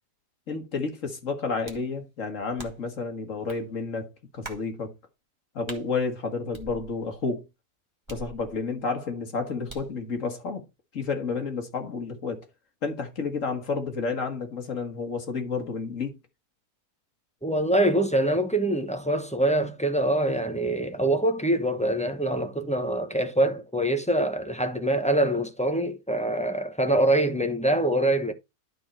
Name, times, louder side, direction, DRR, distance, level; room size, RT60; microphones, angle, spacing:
voice 1, 0.5-4.9 5.5-7.4 8.1-10.7 10.9-12.4 12.8-16.2, left 4 dB, 55° left, 2.1 m, -31 dB
sound 1, 1.7-1.9 2.6-3.0 3.5-3.6 4.4-4.7 5.7-5.9 6.5-7.2 8.1-8.8 9.7-10.0, right 2 dB, 20° right, 1.4 m, -43 dB
voice 2, 17.4-28.3, right 1 dB, 5° left, 0.7 m, -24 dB
11.5 x 4.3 x 4.3 m
omnidirectional pair, 1.6 m